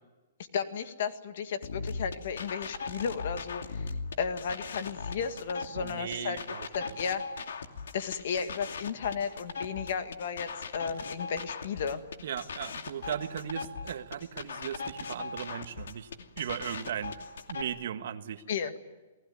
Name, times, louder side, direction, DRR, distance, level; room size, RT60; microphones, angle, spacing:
voice 1, 0.5-3.9 4.2-6.4 6.7-7.2 7.9-12.0 18.5-18.7, left 6 dB, 50° left, 9 dB, 2.0 m, -34 dB
sound 1, 1.6-17.6, left 4 dB, 90° left, 2.6 m, -39 dB
voice 2, 5.8-6.9 12.2-16.1 16.4-17.1 17.5-18.4, right 9 dB, 55° right, 9 dB, 1.6 m, -37 dB
29.5 x 19.5 x 9.6 m, 1.2 s
hypercardioid pair, 175°, 0 cm